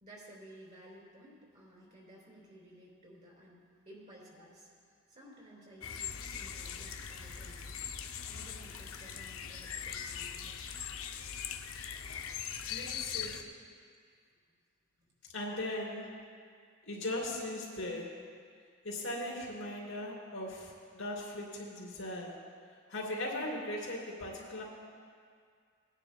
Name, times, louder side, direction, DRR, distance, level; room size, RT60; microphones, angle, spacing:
voice 1, 0.0-10.9 13.2-13.5 15.0-15.1, right 1 dB, 35° right, -4 dB, 3.4 m, -56 dB
sound 1, 5.8-13.4, left 7 dB, 90° left, 0.6 m, -41 dB
voice 2, 12.7-13.4 15.3-16.1 16.9-18.2 18.8-22.4 22.9-24.6, left 1 dB, 70° left, -3 dB, 2.9 m, -38 dB
21.0 x 10.0 x 2.2 m, 2.1 s
head